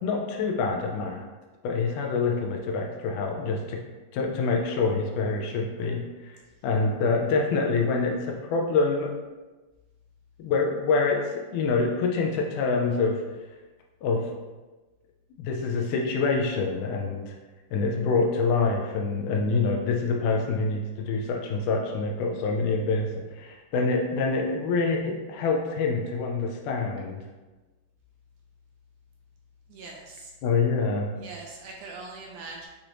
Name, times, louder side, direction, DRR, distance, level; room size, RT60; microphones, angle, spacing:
voice 1, 0.0-1.2 1.6-3.8 4.1-6.4 6.6-9.1 10.4-13.2 14.0-14.3 15.4-17.3 17.7-27.2 30.4-31.1, left 4 dB, 80° left, 1 dB, 2.0 m, -26 dB
voice 2, 29.7-30.3 31.2-32.7, right 3 dB, 80° right, -1 dB, 1.9 m, -42 dB
6.7 x 2.9 x 2.5 m, 1.2 s
omnidirectional pair, 3.8 m